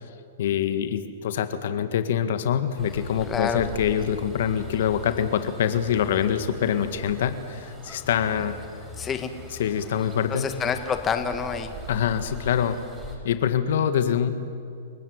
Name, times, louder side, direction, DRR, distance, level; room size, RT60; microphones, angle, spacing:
voice 1, 0.4-8.6 9.6-10.5 11.9-12.8 13.2-14.3, left 9 dB, 65° left, 9 dB, 1.8 m, -25 dB
sound 1, 2.8-13.2, equal, 5° right, 6.9 m, -41 dB
voice 2, 3.3-3.6 9.0-9.3 10.3-11.8, left 7 dB, 20° left, 7 dB, 2.0 m, -27 dB
30.0 x 16.5 x 9.7 m, 2.3 s
hypercardioid pair, 130°, 0 cm